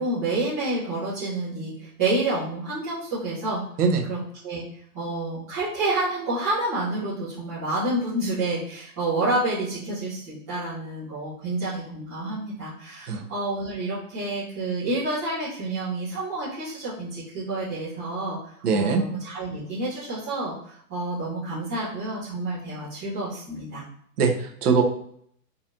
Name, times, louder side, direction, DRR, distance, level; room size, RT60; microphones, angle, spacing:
voice 1, 0.0-3.6 4.1-4.6 4.9-18.4 18.7-23.8, right 2 dB, 10° right, -15 dB, 0.6 m, -29 dB
voice 2, 18.6-19.0 24.2-24.8, right 5 dB, 70° right, 3 dB, 1.0 m, -21 dB
3.9 x 2.9 x 2.5 m, 0.65 s
hypercardioid pair, 170°, 48 cm